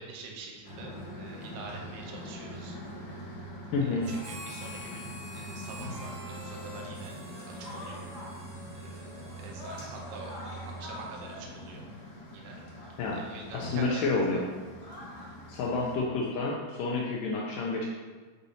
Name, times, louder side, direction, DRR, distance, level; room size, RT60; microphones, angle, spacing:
voice 1, 0.0-2.8 3.8-8.0 8.7-11.8 12.3-12.6 13.1-14.5, right 4 dB, 90° right, 0 dB, 2.8 m, -46 dB
sound 1, 0.6-16.0, equal, 50° left, 2.8 m, -43 dB
voice 2, 3.7-4.0 13.0-13.2 13.5-14.5 15.5-17.9, left 3 dB, 85° left, -2 dB, 1.9 m, -29 dB
Harmonica, 4.0-11.7, left 1 dB, 70° right, 0.7 m, -48 dB
8.2 x 5.1 x 2.7 m, 1.4 s
omnidirectional pair, 4.6 m